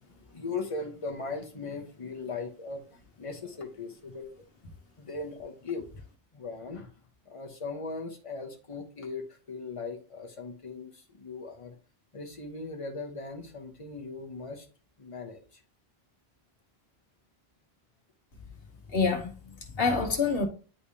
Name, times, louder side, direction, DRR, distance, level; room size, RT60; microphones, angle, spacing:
voice 1, 0.0-2.8 3.2-4.3 5.0-5.9 6.3-6.9 7.3-11.8 12.1-14.7 15.0-15.6, left 4 dB, 35° left, 1.0 m, -38 dB
voice 2, 18.9-20.5, left 4 dB, 65° left, 1.3 m, -27 dB
9.9 x 3.3 x 2.8 m
omnidirectional pair, 1.1 m